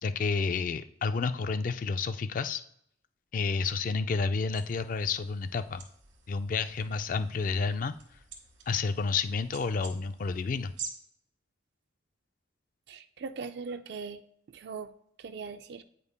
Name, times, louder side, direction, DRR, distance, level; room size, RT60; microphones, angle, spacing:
voice 1, 0.0-2.6 3.3-5.8 6.3-7.9 8.7-10.7, left 4 dB, 45° left, 11 dB, 0.3 m, -30 dB
sound 1, 4.5-10.9, right 6 dB, 80° right, 1.5 m, -48 dB
voice 2, 12.9-14.2 14.5-14.9 15.2-15.8, right 4 dB, 60° right, 9 dB, 0.3 m, -40 dB
9.3 x 5.2 x 2.2 m, 0.70 s
head